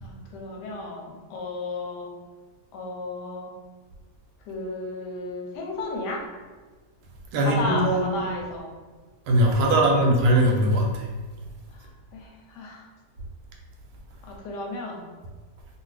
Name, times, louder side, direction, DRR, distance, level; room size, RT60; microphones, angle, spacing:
voice 1, 0.0-2.1 2.7-3.5 4.5-6.2 7.4-8.7 9.7-9.9 12.1-12.8 14.2-15.0, left 2 dB, 85° left, 0 dB, 1.2 m, -33 dB
voice 2, 7.3-8.2 9.3-11.1, right 1 dB, 75° right, 0 dB, 1.1 m, -20 dB
2.6 x 2.6 x 3.2 m, 1.4 s
omnidirectional pair, 1.8 m